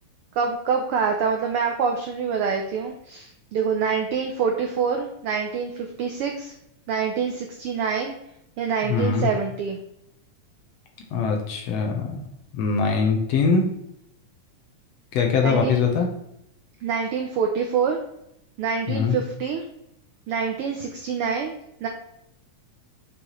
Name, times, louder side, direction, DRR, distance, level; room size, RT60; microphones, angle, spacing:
voice 1, 0.3-6.5 6.9-8.1 8.6-9.8 15.4-15.9 16.8-18.0 18.6-19.6 20.3-21.5 21.8-21.9, right 6 dB, 85° right, 3 dB, 1.2 m, -26 dB
voice 2, 8.9-9.3 11.1-12.2 12.5-13.7 15.1-16.1 18.9-19.2, left 5 dB, 70° left, 2 dB, 1.8 m, -22 dB
6.7 x 5.6 x 3.1 m, 0.78 s
omnidirectional pair, 3.5 m